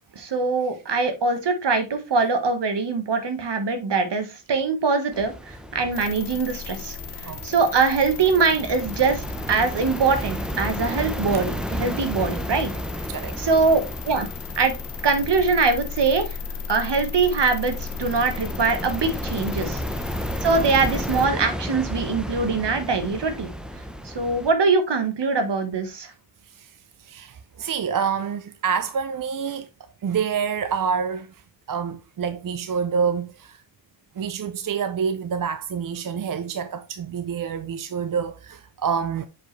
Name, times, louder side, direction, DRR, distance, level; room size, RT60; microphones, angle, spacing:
voice 1, 0.1-7.0 7.2-12.7 13.4-14.3 14.6-14.7 15.0-16.4 16.7-19.8 20.4-23.5 24.0-26.1, right 4 dB, 60° right, 1.6 m, -23 dB
sound 1, 5.1-24.5, equal, ahead, 0.8 m, -33 dB
sound 2, 5.9-21.3, left 6 dB, 60° left, 1.0 m, -36 dB
voice 2, 7.1-7.5 12.2-12.3 13.1-13.4 20.2-20.3 26.5-29.7 30.0-31.4 31.7-33.6 34.2-39.3, right 6 dB, 45° right, 0.6 m, -27 dB
7.2 x 5.1 x 3.2 m
wide cardioid pair, 90°, 46 cm